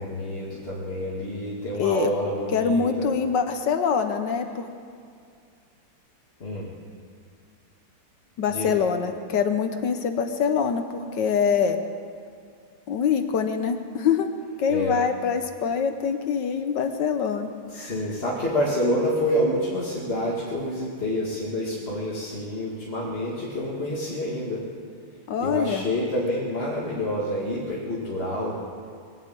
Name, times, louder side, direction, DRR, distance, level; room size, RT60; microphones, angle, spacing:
voice 1, 0.0-3.1 6.4-6.7 8.5-8.7 14.7-15.0 17.7-24.6 25.4-28.5, equal, 30° left, -5 dB, 1.9 m, -28 dB
voice 2, 1.8-2.1 2.5-4.7 8.4-11.8 12.9-17.9 25.3-25.8, left 6 dB, 65° left, 7 dB, 1.4 m, -24 dB
21.5 x 8.1 x 8.4 m, 2.3 s
omnidirectional pair, 2.4 m